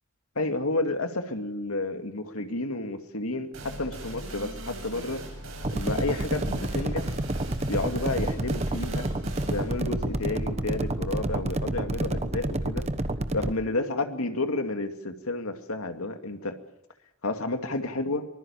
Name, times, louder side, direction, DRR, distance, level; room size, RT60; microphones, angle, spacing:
voice 1, 0.4-5.2 5.7-7.1 7.7-9.1 9.5-12.8 13.3-16.6 17.2-18.3, left 2 dB, 75° left, 6 dB, 2.4 m, -31 dB
sound 1, 3.5-11.0, right 1 dB, 65° right, 7.8 m, -41 dB
sound 2, 5.6-13.5, right 1 dB, 30° right, 1.1 m, -29 dB
24.5 x 20.5 x 7.2 m, 0.80 s
head